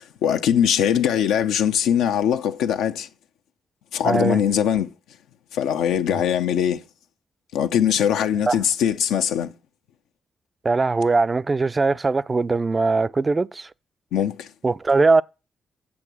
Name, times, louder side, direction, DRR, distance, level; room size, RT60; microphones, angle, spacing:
voice 1, 0.0-3.1 3.9-4.9 5.5-6.8 7.5-9.5 14.1-14.5, left 9 dB, 80° left, 0.6 m, -21 dB
voice 2, 4.0-4.4 8.5-8.6 10.6-13.7 14.6-15.2, right 3 dB, 35° right, 0.4 m, -20 dB
8.6 x 6.9 x 6.1 m
hypercardioid pair, 45°, 0 cm